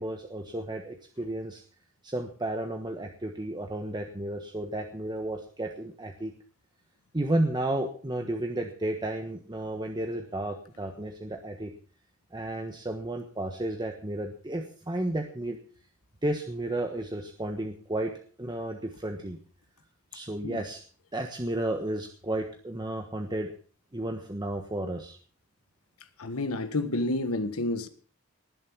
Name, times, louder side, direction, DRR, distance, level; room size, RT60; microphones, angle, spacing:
voice 1, 0.0-1.6 2.0-6.3 7.1-11.7 12.3-15.6 16.2-18.1 18.4-19.4 20.1-20.8 21.1-23.5 23.9-25.2, right 1 dB, 20° right, 1.3 m, -32 dB
voice 2, 26.2-27.9, left 2 dB, 75° left, 1.4 m, -29 dB
19.5 x 7.6 x 6.1 m
head